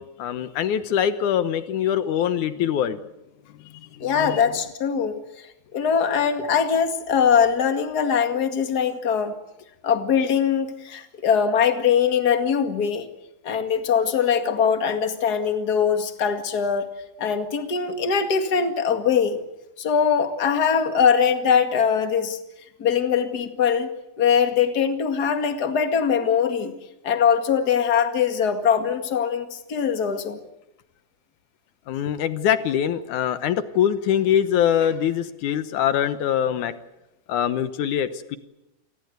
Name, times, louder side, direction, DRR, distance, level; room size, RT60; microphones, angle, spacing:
voice 1, 0.0-3.0 3.9-4.4 31.9-36.7 37.3-38.4, left 9 dB, 80° left, 11 dB, 1.7 m, -23 dB
voice 2, 4.0-9.3 9.8-13.1 13.4-16.9 17.2-19.4 19.8-22.4 22.8-23.9 24.2-26.7 27.0-30.4, left 7 dB, 40° left, 7 dB, 1.5 m, -22 dB
28.5 x 21.5 x 8.1 m, 0.91 s
omnidirectional pair, 5.0 m